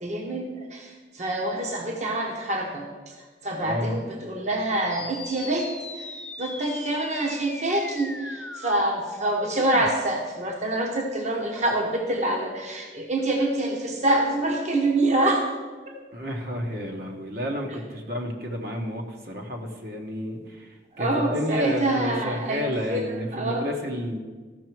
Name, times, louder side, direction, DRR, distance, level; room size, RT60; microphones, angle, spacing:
voice 1, 0.0-5.7 5.9-15.4 15.9-16.0 21.0-23.7, right 1 dB, 40° right, 1 dB, 1.1 m, -26 dB
voice 2, 3.6-4.0 16.1-24.2, equal, 55° right, 1 dB, 1.2 m, -30 dB
sound 1, 4.9-9.9, left 2 dB, 5° left, 0.4 m, -38 dB
14.0 x 5.9 x 4.6 m, 1.4 s
head